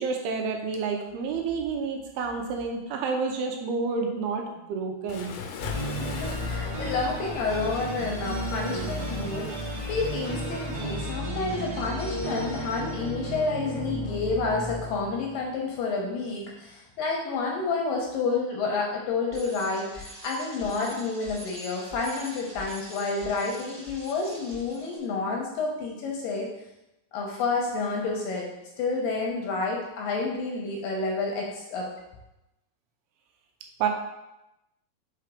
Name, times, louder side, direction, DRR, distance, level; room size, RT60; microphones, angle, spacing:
voice 1, 0.0-5.4 33.8-33.9, right 5 dB, 80° right, 3 dB, 2.7 m, -29 dB
Waves surf, 5.1-11.0, left 6 dB, 90° left, 2.8 m, -41 dB
sound 1, 5.6-15.4, right 1 dB, 55° right, 0.9 m, -33 dB
voice 2, 6.0-26.5 27.1-28.5 28.8-31.9, left 3 dB, 75° left, -1 dB, 2.3 m, -29 dB
Bicycle, 19.3-25.0, equal, 25° right, 2.6 m, -44 dB
5.8 x 4.5 x 5.0 m, 0.93 s
omnidirectional pair, 4.6 m